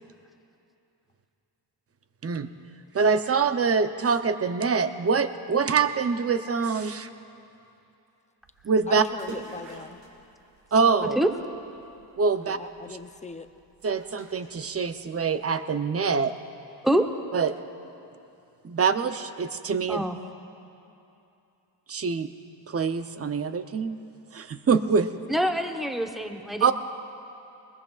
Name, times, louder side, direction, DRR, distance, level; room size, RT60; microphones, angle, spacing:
voice 1, 2.9-7.1 8.6-9.0 10.7-11.2 12.2-12.6 12.9-13.0 13.8-16.3 17.3-17.6 18.6-20.1 21.9-22.3 22.7-24.0 24.3-25.1 26.6-26.7, right 5 dB, 35° right, 9 dB, 0.7 m, -24 dB
sound 1, 8.4-15.3, right 3 dB, 75° right, 2.6 m, -49 dB
voice 2, 8.9-10.0 12.4-13.5, left 3 dB, 15° left, 9 dB, 0.5 m, -40 dB
voice 3, 25.3-26.7, equal, ahead, 4 dB, 0.9 m, -25 dB
23.0 x 20.5 x 2.4 m, 2.8 s
cardioid pair, 90°, 44 cm